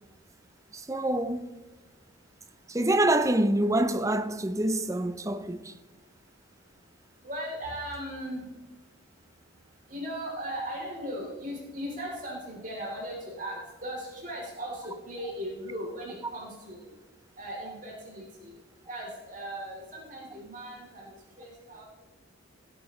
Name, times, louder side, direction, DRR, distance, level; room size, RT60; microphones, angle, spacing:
voice 1, 0.7-1.6 2.7-5.7, right 1 dB, 15° right, 0.5 m, -26 dB
voice 2, 7.2-8.4 9.9-16.9 17.4-18.5 18.9-21.1 21.4-21.8, equal, 40° right, 3.5 m, -38 dB
17.5 x 8.7 x 3.2 m
head